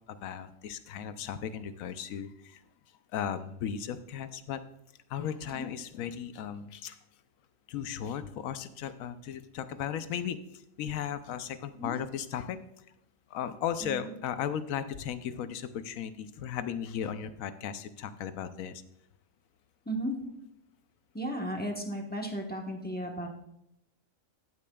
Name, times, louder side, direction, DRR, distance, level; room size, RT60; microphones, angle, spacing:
voice 1, 0.1-2.6 3.1-4.6 5.1-7.0 7.7-10.4 10.8-12.6 13.3-18.8, left 9 dB, 80° left, 12 dB, 1.1 m, -36 dB
voice 2, 13.8-14.1 19.9-20.1 21.1-23.3, equal, 10° left, 1 dB, 0.9 m, -35 dB
14.0 x 8.4 x 2.3 m, 0.80 s
omnidirectional pair, 1.4 m